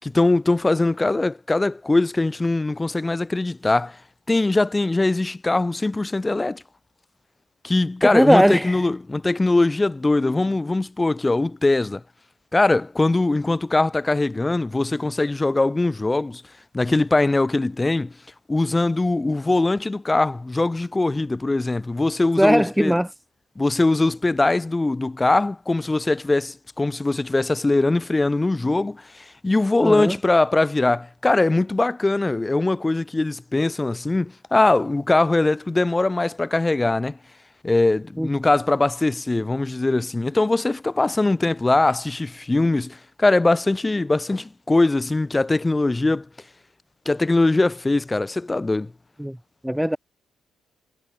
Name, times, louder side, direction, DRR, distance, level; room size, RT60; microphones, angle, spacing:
voice 1, 0.0-4.0 4.3-6.6 7.6-12.0 12.5-16.4 16.7-18.1 18.5-23.0 23.6-37.2 37.6-46.3 47.1-48.9, left 2 dB, 15° left, 5.8 m, -21 dB
voice 2, 8.0-8.8 22.4-23.1 29.8-30.2 38.2-38.3 49.2-49.4 49.6-50.0, equal, 5° right, 4.8 m, -19 dB
cardioid pair, 90°, 0 cm